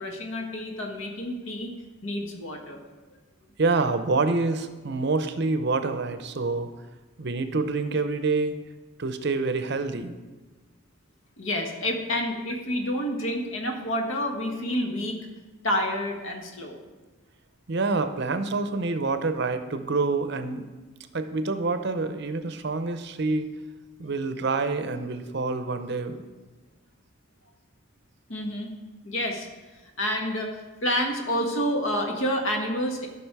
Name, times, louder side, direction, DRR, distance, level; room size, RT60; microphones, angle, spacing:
voice 1, 0.0-1.7 2.0-2.8 11.4-15.2 15.6-16.8 28.3-28.7 29.0-29.5 30.0-33.1, equal, 70° left, 2 dB, 1.5 m, -28 dB
voice 2, 3.6-6.7 7.2-8.6 9.0-10.1 17.7-20.6 21.1-23.5 24.0-26.2, right 3 dB, 55° right, 9 dB, 0.6 m, -27 dB
12.5 x 6.1 x 4.7 m, 1.3 s
head